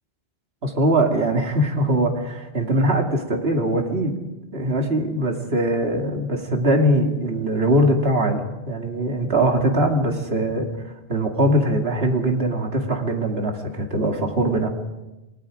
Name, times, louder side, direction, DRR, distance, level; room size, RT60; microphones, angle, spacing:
voice 1, 0.6-4.2 4.5-10.7 11.1-14.7, right 1 dB, 65° right, 2 dB, 2.8 m, -21 dB
28.5 x 19.0 x 5.1 m, 1.0 s
omnidirectional pair, 1.1 m